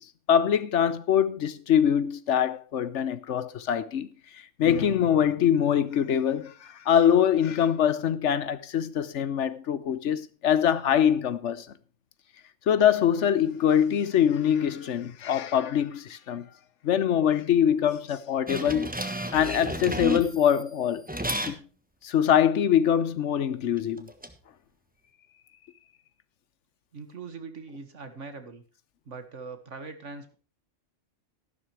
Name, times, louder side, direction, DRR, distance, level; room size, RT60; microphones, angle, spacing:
voice 1, 0.3-4.1 4.6-11.7 12.7-16.5 16.8-18.9 19.3-21.0 21.5-21.6 22.0-24.1, left 9 dB, 70° left, 1.1 m, -23 dB
sound 1, 18.5-20.6 21.1-21.6 23.8-24.3, right 1 dB, 5° right, 1.2 m, -32 dB
voice 2, 26.9-28.6 29.1-30.4, right 4 dB, 70° right, 2.0 m, -41 dB
13.5 x 11.5 x 3.2 m
omnidirectional pair, 1.3 m